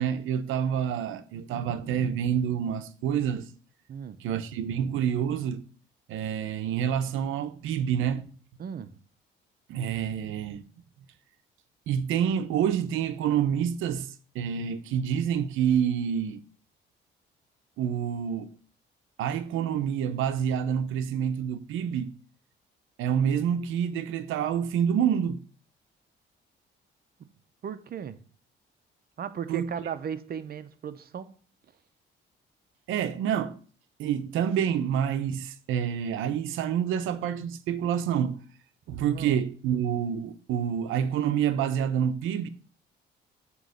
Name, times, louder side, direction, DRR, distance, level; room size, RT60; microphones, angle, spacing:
voice 1, 0.0-3.5 4.2-5.6 6.1-8.3 9.7-10.6 11.9-16.4 17.8-18.5 19.2-22.1 23.0-25.4 29.5-29.7 32.9-33.6 34.0-38.4 38.9-42.5, right 8 dB, 90° right, 0.7 m, -27 dB
voice 2, 8.6-9.0 27.2-27.3 27.6-28.2 29.2-31.3 39.1-39.4, right 8 dB, 50° right, 0.7 m, -36 dB
7.7 x 3.1 x 6.3 m
cardioid pair, 90°, 20 cm